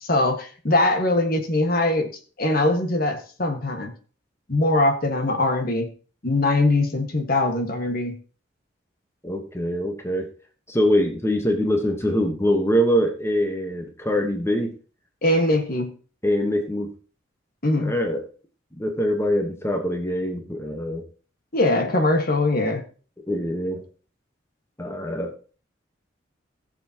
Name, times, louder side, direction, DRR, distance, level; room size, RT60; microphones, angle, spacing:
voice 1, 0.0-2.1 2.4-3.9 4.5-5.9 6.2-8.2 15.2-15.9 17.6-17.9 21.5-22.8, left 2 dB, 50° left, 5 dB, 1.7 m, -22 dB
voice 2, 9.2-10.3 10.7-14.7 16.2-16.9 17.8-18.2 18.7-21.0 23.3-23.8 24.8-25.6, equal, 15° left, 3 dB, 1.3 m, -24 dB
18.5 x 7.0 x 3.0 m, 0.38 s
head